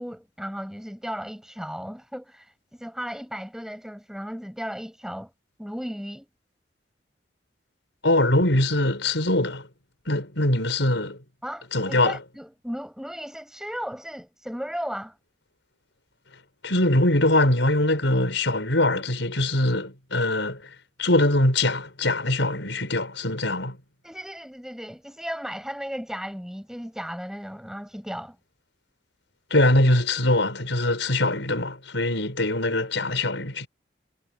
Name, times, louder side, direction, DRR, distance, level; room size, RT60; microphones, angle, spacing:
voice 1, 0.0-5.3 5.6-6.3 11.4-15.2 24.0-28.4, equal, 5° right, 8.0 m, -35 dB
voice 2, 8.0-9.7 10.1-11.2 11.7-12.2 16.6-20.6 21.0-23.8 29.5-33.7, left 1 dB, 80° left, 5.7 m, -22 dB
head